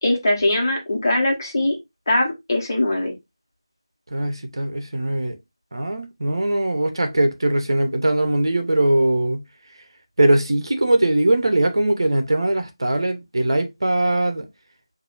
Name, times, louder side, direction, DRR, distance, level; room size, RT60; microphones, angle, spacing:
voice 1, 0.0-1.8 2.1-3.1, left 1 dB, 40° left, 1.3 m, -21 dB
voice 2, 4.1-5.4 5.7-9.4 10.2-14.5, right 1 dB, 55° right, 0.9 m, -20 dB
5.9 x 2.7 x 2.6 m
figure-of-eight pair, 165°, 3 cm